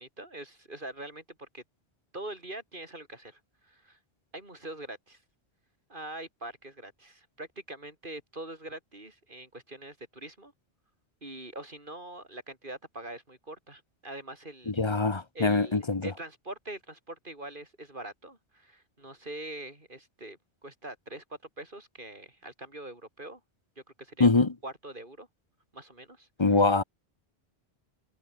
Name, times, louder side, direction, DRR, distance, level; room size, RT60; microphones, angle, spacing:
voice 1, 0.0-1.6 2.1-4.0 4.3-5.2 5.9-10.5 11.2-14.7 15.3-23.4 23.8-24.3 24.6-25.3 25.7-26.6, right 1 dB, 50° right, 5.6 m, -43 dB
voice 2, 14.7-16.1 24.2-24.5 26.4-26.8, left 3 dB, 30° left, 1.0 m, -23 dB
omnidirectional pair, 1.1 m